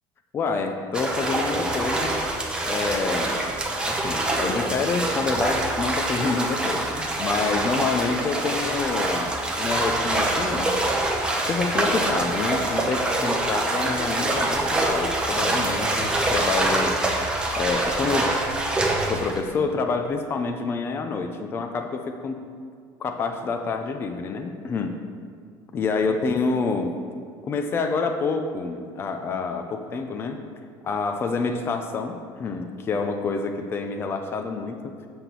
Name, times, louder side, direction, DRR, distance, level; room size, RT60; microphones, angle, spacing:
voice 1, 0.3-2.2 2.6-3.4 3.8-9.3 9.6-10.7 11.4-17.0 17.6-18.4 19.0-22.5 23.0-25.0 25.7-27.0 27.4-30.4 30.8-35.0, left 4 dB, 25° left, 5 dB, 0.6 m, -27 dB
sound 1, 0.9-19.4, right 2 dB, 10° right, 1.0 m, -25 dB
7.9 x 5.9 x 6.9 m, 2.2 s
cardioid pair, 160°, 8 cm